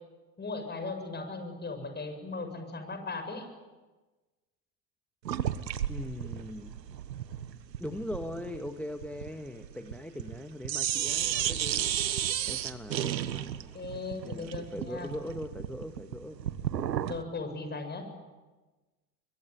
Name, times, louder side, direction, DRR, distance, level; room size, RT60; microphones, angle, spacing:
voice 1, 0.4-3.5 13.7-15.1 17.1-18.1, left 3 dB, 20° left, 7 dB, 7.6 m, -37 dB
sound 1, 5.3-10.4 10.6-17.2, right 10 dB, 90° right, 1.4 m, -33 dB
voice 2, 5.9-6.8 7.8-11.9 12.4-13.1 14.2-16.4, left 1 dB, 5° left, 7 dB, 1.6 m, -40 dB
24.0 x 23.5 x 10.0 m, 1.2 s
hypercardioid pair, 90°, 49 cm